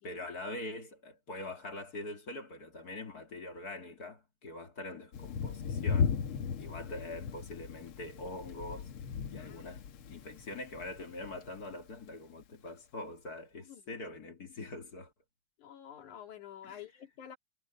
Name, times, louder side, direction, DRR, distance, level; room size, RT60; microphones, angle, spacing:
voice 1, 0.0-6.2 6.6-8.9 9.3-15.1 16.6-16.8, left 2 dB, 35° left, 2.2 m, -43 dB
Thunder, 5.1-11.9, left 6 dB, 60° left, 1.7 m, -36 dB
voice 2, 9.4-10.2 13.6-14.0 15.6-17.4, left 10 dB, 85° left, 3.6 m, -50 dB
omnidirectional pair, 3.4 m